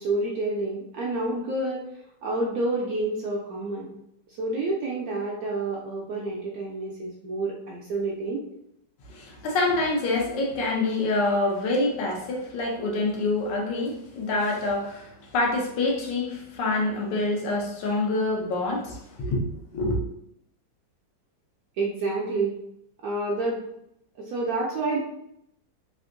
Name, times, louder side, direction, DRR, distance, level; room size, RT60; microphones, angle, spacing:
voice 1, 0.0-1.8 2.2-4.0 4.3-8.4 21.8-22.5 23.0-23.6 24.2-25.0, right 2 dB, 75° right, -3 dB, 0.8 m, -28 dB
voice 2, 9.1-20.0, left 2 dB, 75° left, -1 dB, 1.4 m, -26 dB
3.5 x 2.5 x 2.5 m, 0.77 s
omnidirectional pair, 2.0 m